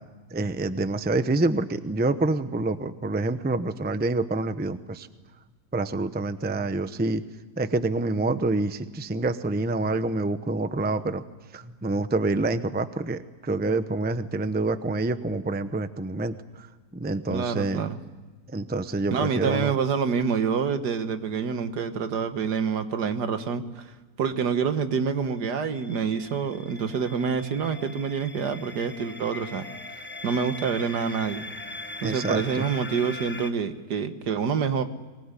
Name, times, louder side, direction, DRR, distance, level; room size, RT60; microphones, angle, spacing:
voice 1, 0.3-5.1 5.7-7.2 7.6-11.2 11.5-16.4 16.9-17.8 18.5-19.7 32.0-32.6, right 2 dB, 10° right, 11 dB, 0.5 m, -27 dB
voice 2, 17.3-18.0 19.1-23.8 24.2-29.6 30.2-31.5 32.0-34.8, right 6 dB, 80° right, 9 dB, 1.9 m, -27 dB
sound 1, 25.4-33.5, left 2 dB, 5° left, 1.3 m, -40 dB
24.0 x 20.0 x 9.9 m, 1.3 s
omnidirectional pair, 1.7 m